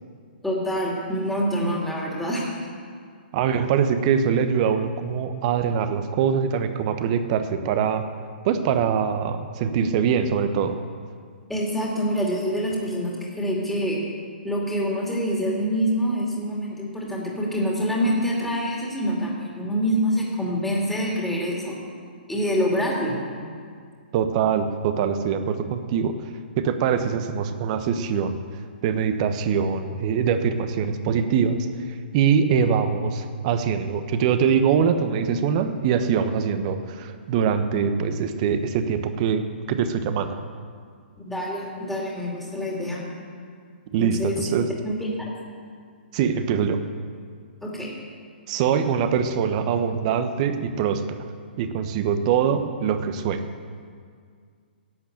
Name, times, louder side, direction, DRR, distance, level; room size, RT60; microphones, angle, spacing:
voice 1, 0.4-2.4 11.5-14.0 14.4-21.8 22.3-23.2 41.2-43.1 44.0-44.4 44.8-45.3 47.6-47.9, equal, 5° left, -4 dB, 2.7 m, -26 dB
voice 2, 3.3-8.1 8.4-10.8 24.1-26.1 26.6-28.4 28.8-40.3 43.9-44.7 46.1-46.8 48.5-51.2 51.6-53.4, right 7 dB, 40° right, 9 dB, 1.1 m, -23 dB
12.0 x 8.2 x 7.9 m, 2.1 s
hypercardioid pair, 130°, 6 cm